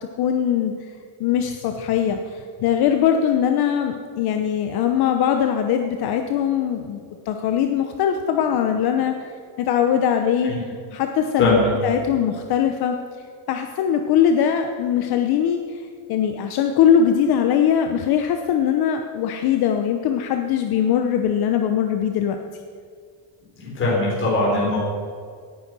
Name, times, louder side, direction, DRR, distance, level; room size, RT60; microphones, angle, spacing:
voice 1, 0.2-0.9 1.2-9.3 9.6-10.5 10.9-13.0 13.5-15.8 16.1-22.4, left 8 dB, 55° left, 5 dB, 1.0 m, -21 dB
voice 2, 11.4-11.7 23.5-24.8, left 2 dB, 25° left, -5 dB, 4.2 m, -21 dB
18.0 x 9.7 x 6.2 m, 2.1 s
cardioid pair, 180°, 45 cm